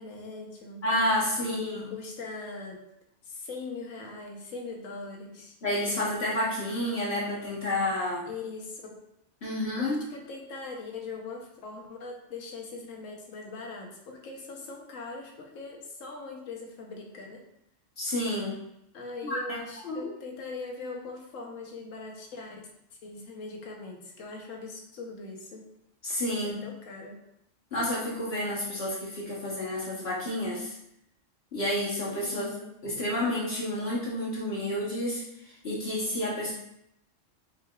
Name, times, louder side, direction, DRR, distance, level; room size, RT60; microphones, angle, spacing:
voice 1, 0.0-0.8 1.4-2.8 3.2-5.5 8.3-8.8 9.8-17.4 18.9-22.6 23.0-25.6 26.4-27.2 32.2-32.7, left 3 dB, 85° left, 1 dB, 1.2 m, -41 dB
voice 2, 0.8-1.9 5.6-8.3 9.4-10.0 18.0-18.6 19.2-19.6 19.8-20.1 26.0-26.6 27.7-30.7 31.5-32.5 32.8-35.2 35.6-36.5, left 1 dB, 55° left, -6 dB, 1.2 m, -30 dB
4.6 x 4.6 x 2.3 m, 0.78 s
omnidirectional pair, 1.3 m